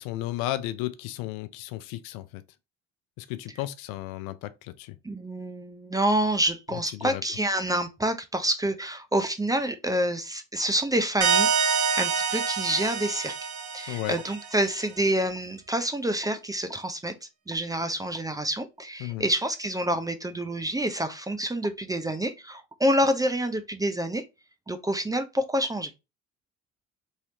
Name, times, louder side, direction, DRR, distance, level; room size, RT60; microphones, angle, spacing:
voice 1, 0.0-2.4 3.2-5.0 6.9-7.2 13.9-14.2 19.0-19.3, left 15 dB, 65° left, 0.5 m, -34 dB
voice 2, 5.0-13.3 13.7-17.1 17.5-24.3 24.7-25.9, right 1 dB, 10° right, 0.4 m, -27 dB
sound 1, 11.2-14.6, right 6 dB, 50° right, 0.9 m, -26 dB
3.1 x 2.7 x 2.8 m
hypercardioid pair, 55°, 38 cm